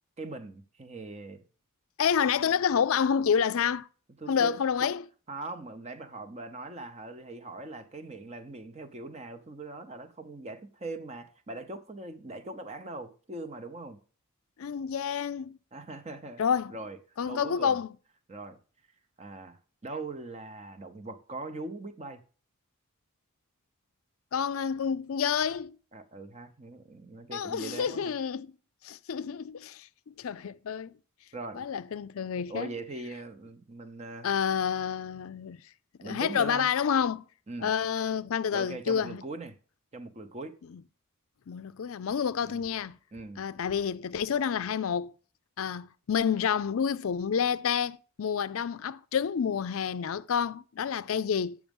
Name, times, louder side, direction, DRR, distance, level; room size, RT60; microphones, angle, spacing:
voice 1, 0.2-1.4 4.2-4.6 5.3-14.0 15.7-16.4 16.7-17.0 17.3-17.8 18.3-18.6 19.2-22.2 25.9-28.1 31.3-31.6 32.3-34.3 36.0-36.7 37.5-37.7 38.5-39.6 39.9-40.6 42.4-42.6 43.1-43.4, right 2 dB, 30° right, 0.8 m, -41 dB
voice 2, 2.0-3.9 4.3-5.0 14.6-15.6 16.4-16.8 17.2-17.9 24.3-25.8 27.3-28.5 28.8-30.9 31.5-32.7 34.2-35.6 36.0-37.2 37.6-39.2 41.5-43.0 43.4-45.1 45.6-51.6, left 7 dB, 70° left, 0.4 m, -29 dB
8.5 x 6.1 x 5.3 m
head